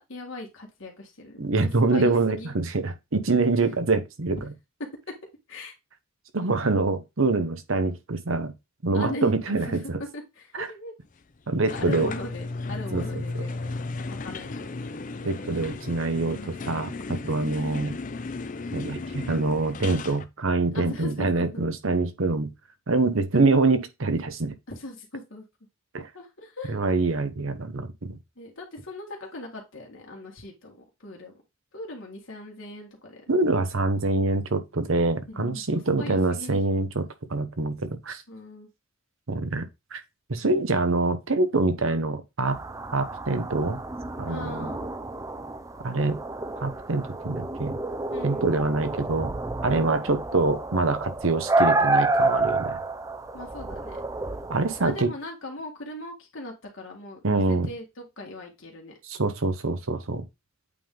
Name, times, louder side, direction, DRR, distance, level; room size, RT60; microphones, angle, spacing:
voice 1, 0.0-1.5 1.9-2.5 5.5-5.7 8.9-10.9 11.7-13.7 14.1-14.7 17.5-17.9 20.7-21.6 23.3-23.5 24.7-25.4 26.1-26.8 28.4-30.8 31.0-31.3 31.7-33.2 35.3-35.6 36.0-36.6 38.3-38.7 44.3-44.9 48.1-48.6 53.3-54.0 54.8-59.0, left 1 dB, 70° left, 1.9 m, -39 dB
voice 2, 1.4-4.4 6.3-8.5 8.8-10.0 10.6-10.7 11.5-12.1 12.9-13.0 13.3-13.4 15.2-17.9 18.7-22.5 22.9-24.5 25.9-26.1 26.7-28.2 33.3-37.0 37.3-38.2 39.3-39.6 39.9-40.0 40.3-42.6 42.9-43.8 44.2-44.7 45.8-46.2 46.6-47.8 48.2-49.3 49.6-52.8 54.5-55.1 57.2-57.7 59.1-60.2, right 3 dB, 80° right, 1.0 m, -25 dB
sound 1, 11.7-20.2, left 3 dB, 40° left, 0.5 m, -35 dB
sound 2, 42.4-55.0, right 2 dB, 15° right, 0.4 m, -29 dB
8.3 x 3.6 x 3.8 m
head